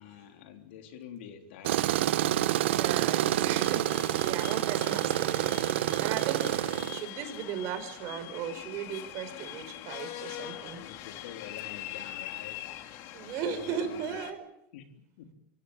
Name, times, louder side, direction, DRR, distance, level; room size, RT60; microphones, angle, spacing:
voice 1, 0.0-1.9 6.6-6.7 10.6-13.0 13.3-14.2 14.7-14.8 15.2-15.3, left 9 dB, 80° left, 5 dB, 3.7 m, -47 dB
Tools, 1.6-7.0, right 13 dB, 80° right, 1.1 m, -28 dB
voice 2, 2.8-5.6 6.0-10.8 13.1-14.5, right 8 dB, 55° right, 9 dB, 4.5 m, -37 dB
sound 1, 3.2-14.3, left 13 dB, 55° left, 2.5 m, -43 dB
26.5 x 16.0 x 8.9 m, 0.80 s
supercardioid pair, 120°, 6 cm